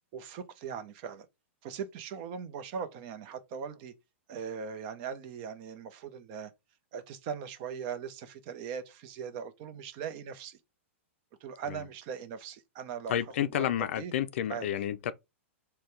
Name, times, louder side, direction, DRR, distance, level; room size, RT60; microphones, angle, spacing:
voice 1, 0.1-1.3 1.6-3.9 4.3-6.5 6.9-10.6 11.4-13.1 13.5-13.7 14.0-14.1 14.5-14.7, right 7 dB, 45° right, 0.7 m, -40 dB
voice 2, 13.1-15.1, left 10 dB, 70° left, 0.4 m, -30 dB
4.1 x 2.2 x 3.2 m
hypercardioid pair, 120°, 7 cm